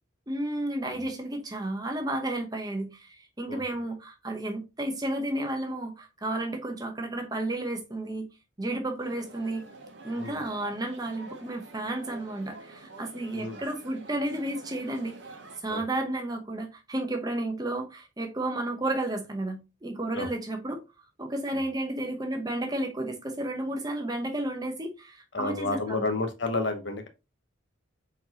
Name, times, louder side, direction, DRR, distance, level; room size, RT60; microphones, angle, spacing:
voice 1, 0.3-8.3 8.6-9.6 10.0-15.1 15.6-20.8 21.2-26.1, right 1 dB, 20° right, 0.8 m, -32 dB
sound 1, 9.0-15.6, right 2 dB, 60° right, 1.0 m, -47 dB
voice 2, 25.3-27.1, left 3 dB, 60° left, 1.0 m, -31 dB
4.4 x 4.1 x 2.9 m
head